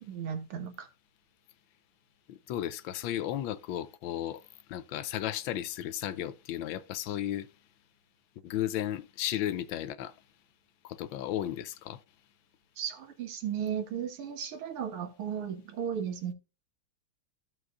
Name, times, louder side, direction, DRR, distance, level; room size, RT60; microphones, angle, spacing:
voice 1, 0.1-0.9 12.8-16.3, right 8 dB, 80° right, 2.2 m, -35 dB
voice 2, 2.3-7.5 8.4-10.2 10.8-12.0, left 12 dB, 75° left, 1.2 m, -34 dB
15.0 x 5.5 x 2.4 m
omnidirectional pair, 2.4 m